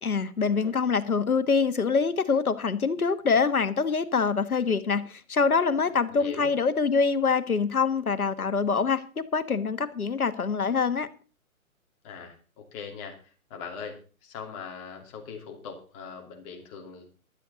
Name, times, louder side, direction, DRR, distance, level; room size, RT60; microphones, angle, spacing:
voice 1, 0.0-11.1, left 5 dB, 80° left, 1.6 m, -25 dB
voice 2, 6.1-6.5 12.0-17.2, left 6 dB, 25° left, 2.8 m, -41 dB
15.0 x 12.0 x 4.0 m
figure-of-eight pair, 140°, 43 cm